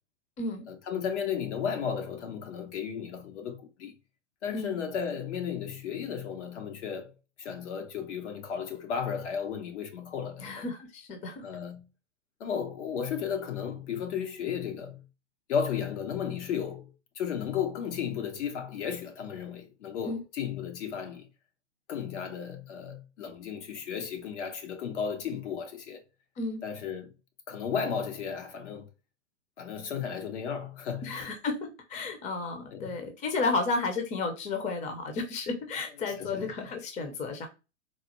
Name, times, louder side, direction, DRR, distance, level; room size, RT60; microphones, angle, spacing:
voice 1, 0.7-3.9 4.4-7.1 7.4-10.6 11.4-11.9 12.4-15.0 15.5-21.3 21.9-26.0 26.6-27.1 27.5-28.9 29.6-31.2 32.7-33.0 36.1-36.5, left 7 dB, 70° left, 1.0 m, -34 dB
voice 2, 10.4-11.4 20.1-20.2 26.4-26.6 31.0-37.5, left 3 dB, 20° left, 0.6 m, -32 dB
4.1 x 2.0 x 2.9 m
hypercardioid pair, 125°, 36 cm